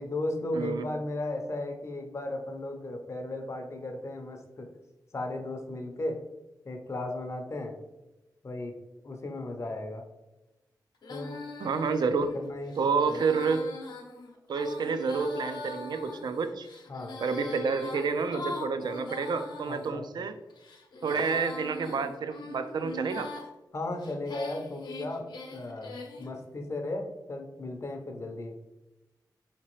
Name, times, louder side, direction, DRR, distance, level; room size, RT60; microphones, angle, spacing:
voice 1, 0.0-4.7 5.1-6.2 6.6-7.8 8.4-8.8 9.0-10.1 11.1-11.5 12.3-13.2 16.9-17.2 19.6-20.3 23.7-28.6, left 2 dB, 40° left, 4 dB, 0.6 m, -36 dB
Female singing, 11.0-19.9 20.5-23.5 24.0-26.3, left 2 dB, 75° left, 0.7 m, -41 dB
voice 2, 11.6-12.3 12.8-13.6 14.5-16.7 17.2-20.3 21.0-23.3, right 5 dB, 75° right, 9 dB, 0.4 m, -29 dB
4.6 x 2.9 x 3.0 m, 1.0 s
wide cardioid pair, 160°, 7 cm